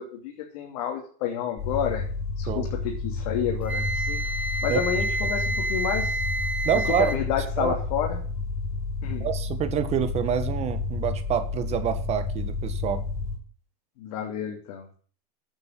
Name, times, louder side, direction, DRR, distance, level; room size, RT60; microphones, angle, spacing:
voice 1, 0.0-2.1 2.4-4.2 4.6-6.2 7.0-8.2 9.0-9.3 14.0-14.9, left 9 dB, 65° left, 1 dB, 3.0 m, -30 dB
sound 1, 1.6-13.4, left 3 dB, 35° left, 5.7 m, -31 dB
Wind instrument woodwind instrument, 3.7-7.2, right 1 dB, 5° right, 1.5 m, -29 dB
voice 2, 6.6-7.2 7.6-7.7 9.2-13.0, right 9 dB, 35° right, 10 dB, 1.6 m, -27 dB
9.0 x 8.8 x 7.5 m, 0.43 s
supercardioid pair, 125°, 19 cm